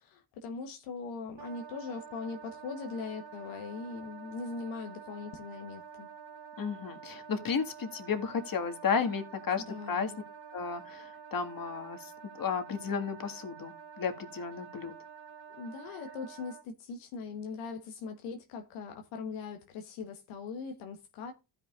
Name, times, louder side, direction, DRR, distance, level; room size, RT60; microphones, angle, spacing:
voice 1, 0.0-6.1 9.7-10.2 15.6-21.3, left 4 dB, 80° left, 1.3 m, -40 dB
Wind instrument woodwind instrument, 1.4-16.6, right 6 dB, 60° right, 1.5 m, -49 dB
voice 2, 6.6-10.1 10.5-14.9, left 6 dB, 45° left, 1.9 m, -33 dB
15.0 x 5.6 x 2.4 m
hypercardioid pair, 50°, 48 cm